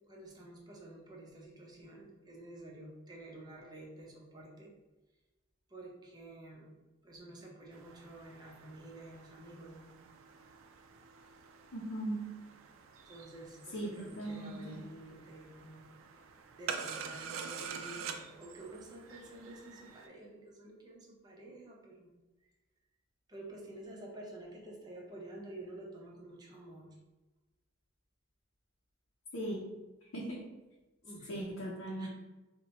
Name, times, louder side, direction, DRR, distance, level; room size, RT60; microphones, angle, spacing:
voice 1, 0.1-4.7 5.7-6.8 7.0-9.9 13.1-15.9 16.6-22.1 23.3-26.9 31.0-31.5 31.9-32.1, right 1 dB, 20° right, -2 dB, 0.7 m, -50 dB
sound 1, 7.7-20.1, right 6 dB, 85° right, 0.4 m, -47 dB
voice 2, 11.7-12.3 13.7-14.8 29.3-29.7 30.1-30.5 31.3-32.1, right 1 dB, 80° left, -4 dB, 0.6 m, -38 dB
4.1 x 2.1 x 2.9 m, 1.1 s
head